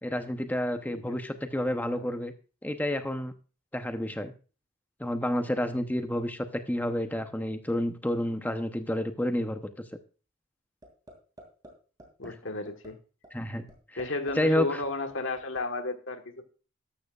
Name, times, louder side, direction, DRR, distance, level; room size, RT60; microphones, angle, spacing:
voice 1, 0.0-2.3 2.6-3.3 3.7-4.3 5.0-9.6 12.2-12.3 13.3-13.6 14.4-14.8, left 1 dB, 10° left, 8 dB, 0.8 m, -29 dB
voice 2, 1.7-2.1 12.2-13.0 14.0-16.4, left 2 dB, 70° left, 7 dB, 1.4 m, -33 dB
sound 1, 10.8-11.1 11.4-11.7 12.0-12.3 12.7-12.9 13.2-13.3 13.7-14.3 14.6-15.6, right 1 dB, 20° right, 2.6 m, -48 dB
13.0 x 12.0 x 2.4 m, 0.36 s
head